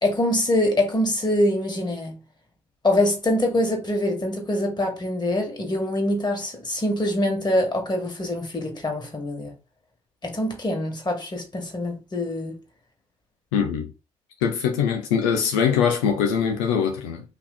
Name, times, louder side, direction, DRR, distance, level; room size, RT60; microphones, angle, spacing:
voice 1, 0.0-2.2 2.8-9.5 10.2-12.6, left 1 dB, 30° left, 2.0 m, -24 dB
voice 2, 13.5-13.9 14.4-17.2, left 7 dB, 90° left, 0.5 m, -22 dB
4.1 x 2.9 x 4.1 m
hypercardioid pair, 50°, 15 cm